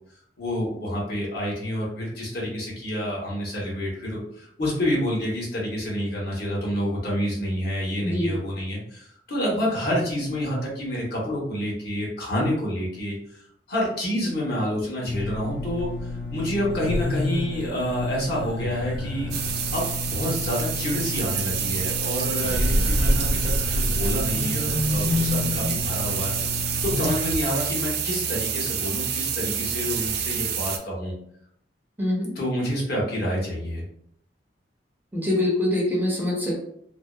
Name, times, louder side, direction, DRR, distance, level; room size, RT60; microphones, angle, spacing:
voice 1, 0.4-13.4 13.7-19.3 19.7-31.1 32.3-33.8, equal, 60° left, -4 dB, 1.0 m, -28 dB
voice 2, 8.0-8.3 32.0-32.3 35.1-36.6, left 1 dB, 10° right, -3 dB, 0.5 m, -24 dB
sound 1, 15.1-27.1, left 1 dB, 75° left, 0.6 m, -28 dB
sound 2, 19.3-30.8, right 8 dB, 60° right, 0.3 m, -28 dB
2.6 x 2.0 x 2.3 m, 0.68 s
head